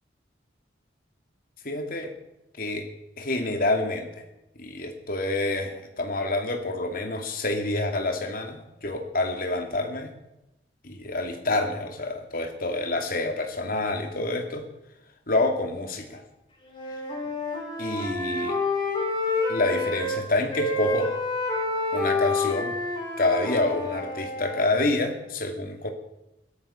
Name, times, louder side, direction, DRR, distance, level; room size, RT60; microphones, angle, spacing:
voice 1, 1.6-2.1 2.6-2.9 3.2-4.2 4.6-10.1 10.8-14.6 15.3-16.2 17.8-18.6 19.5-21.1 21.9-22.8 23.2-25.9, left 2 dB, 50° left, 5 dB, 2.6 m, -27 dB
Wind instrument woodwind instrument, 16.7-20.2 20.5-24.7, left 2 dB, 25° left, 5.4 m, -28 dB
17.5 x 13.0 x 5.9 m, 0.93 s
head